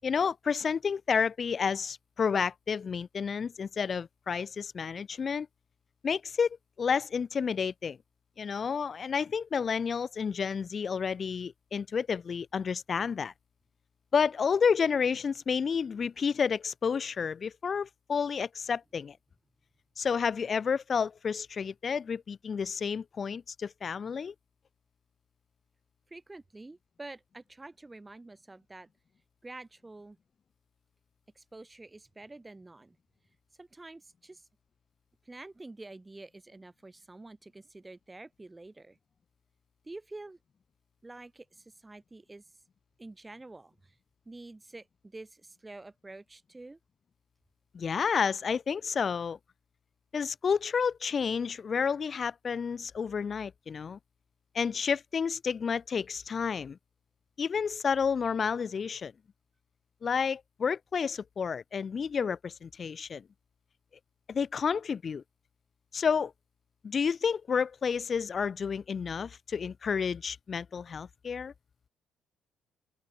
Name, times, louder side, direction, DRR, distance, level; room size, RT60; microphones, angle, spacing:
voice 1, 0.0-5.5 6.0-8.0 8.4-13.3 14.1-19.2 20.0-24.3 47.7-49.4 50.1-54.0 54.5-56.8 57.4-59.1 60.0-63.2 64.3-65.2 65.9-66.3 66.8-71.5, left 6 dB, 45° left, 0.5 m, -30 dB
voice 2, 26.1-28.9 29.4-30.2 31.3-33.0 33.6-34.4 35.2-39.0 39.8-40.4 41.0-42.4 43.0-43.9 44.2-46.8, right 2 dB, 15° right, 6.3 m, -48 dB
open air
cardioid pair, 80°, 0 cm